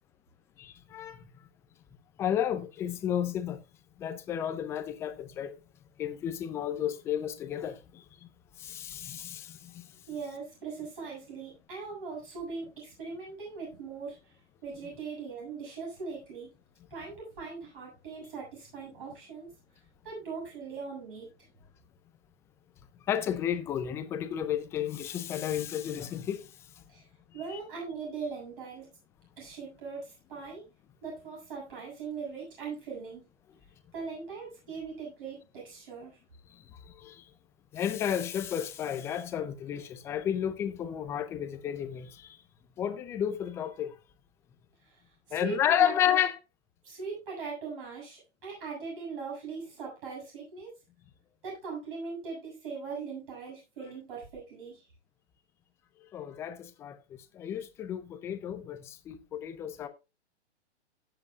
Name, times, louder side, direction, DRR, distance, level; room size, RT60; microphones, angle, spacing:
voice 1, 0.6-1.2 2.2-3.6 4.0-5.6 6.0-8.0 8.6-9.8 23.1-26.5 27.5-27.6 37.0-37.2 37.7-42.3 42.8-43.9 45.3-46.4 56.1-57.0 57.3-59.9, left 10 dB, 10° left, 0.4 m, -32 dB
voice 2, 10.1-14.3 14.6-16.5 16.9-19.5 20.0-21.3 26.9-27.1 27.3-28.9 29.4-30.6 31.0-33.3 33.9-36.2 44.8-45.0 45.3-45.9 46.8-50.7 51.4-54.8, right 5 dB, 50° right, 7.2 m, -40 dB
17.0 x 7.8 x 2.4 m
hypercardioid pair, 135°, 35 cm